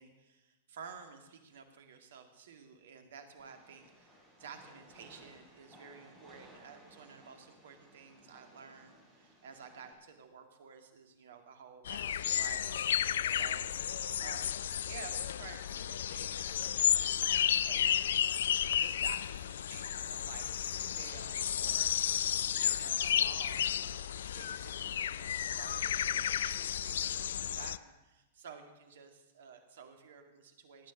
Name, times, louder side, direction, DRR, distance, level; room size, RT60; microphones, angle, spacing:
voice 1, 0.0-14.5 14.8-18.3 18.7-30.9, right 6 dB, 65° right, 6 dB, 2.1 m, -52 dB
Train, 3.4-9.9, right 1 dB, ahead, 7.1 m, -59 dB
sound 1, 11.9-27.8, left 10 dB, 65° left, 0.4 m, -32 dB
18.0 x 9.3 x 6.4 m, 1.1 s
figure-of-eight pair, 100°, 0 cm